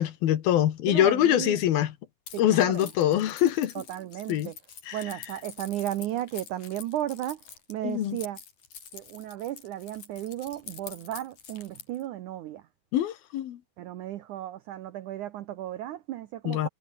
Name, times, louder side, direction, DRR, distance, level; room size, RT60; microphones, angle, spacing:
voice 1, 0.0-1.9 2.4-3.7 4.3-4.5 4.9-5.0 7.8-8.2 12.9-13.6 16.5-16.7, left 12 dB, 65° left, 3.2 m, -24 dB
voice 2, 0.9-1.6 2.3-2.9 3.7-4.6 4.9-7.4 7.7-8.4 8.9-12.6 13.8-16.7, right 13 dB, 85° right, 1.7 m, -34 dB
Keys jangling, 2.3-12.0, left 7 dB, 50° left, 4.4 m, -46 dB
omnidirectional pair, 4.8 m